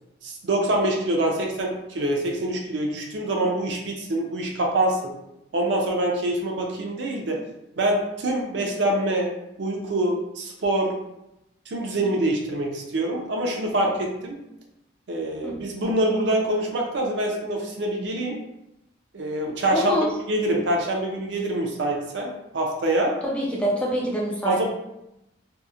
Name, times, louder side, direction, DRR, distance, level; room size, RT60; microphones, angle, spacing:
voice 1, 0.2-5.1 5.5-7.4 7.8-9.3 9.6-10.9 11.7-14.4 15.1-18.4 19.1-19.9 20.3-23.2 24.4-24.7, right 1 dB, 65° right, 0 dB, 0.5 m, -25 dB
voice 2, 19.7-20.1 23.2-24.6, equal, 5° left, -3 dB, 0.3 m, -25 dB
2.7 x 2.0 x 2.4 m, 0.88 s
head